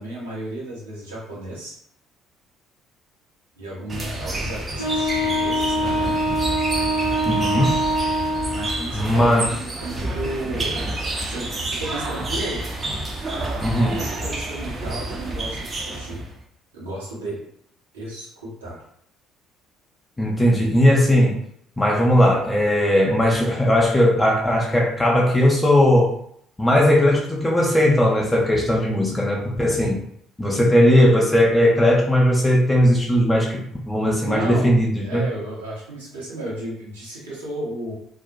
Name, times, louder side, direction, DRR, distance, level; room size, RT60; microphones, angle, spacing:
voice 1, 0.0-1.8 3.6-6.2 8.5-10.8 11.3-12.6 13.7-16.2 16.7-17.4 17.9-18.8 34.2-34.7 35.0-37.9, right 1 dB, 85° right, -7 dB, 0.8 m, -33 dB
sound 1, 3.9-16.4, right 2 dB, 35° right, 0.5 m, -29 dB
Wind instrument woodwind instrument, 4.8-8.9, equal, 90° left, 0.4 m, -24 dB
voice 2, 7.3-7.8 8.9-9.5 13.6-14.0 20.2-21.4 21.8-26.1 26.6-30.0 30.4-35.3, equal, 20° left, -2 dB, 0.4 m, -18 dB
2.3 x 2.0 x 2.6 m, 0.69 s
figure-of-eight pair, 50°, 0 cm